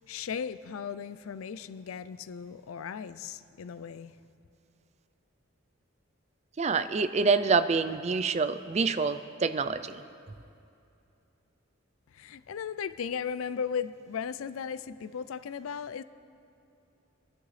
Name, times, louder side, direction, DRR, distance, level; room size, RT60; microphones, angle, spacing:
voice 1, 0.1-4.2 12.1-16.0, left 7 dB, 85° left, 0.4 m, -36 dB
voice 2, 6.6-10.0, right 4 dB, 35° right, 0.4 m, -26 dB
23.5 x 12.0 x 3.3 m
head